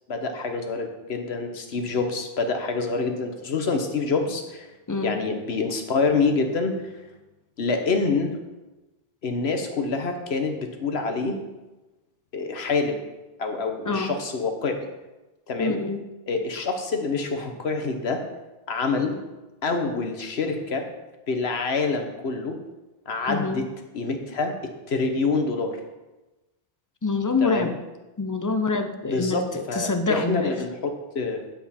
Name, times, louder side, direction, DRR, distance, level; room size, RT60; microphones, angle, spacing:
voice 1, 0.1-4.7 5.0-6.7 7.6-8.3 9.2-11.4 12.3-13.0 13.4-14.9 15.5-15.8 16.3-18.2 18.7-19.1 19.6-20.9 21.3-22.6 23.1-23.7 23.9-24.5 24.9-25.8 27.4-27.7 29.1-31.4, left 4 dB, 85° left, 5 dB, 1.3 m, -26 dB
voice 2, 15.6-16.0 23.3-23.6 27.0-27.7 28.2-30.6, left 3 dB, 25° left, 8 dB, 0.5 m, -26 dB
9.7 x 7.6 x 4.3 m, 1.1 s
omnidirectional pair, 1.0 m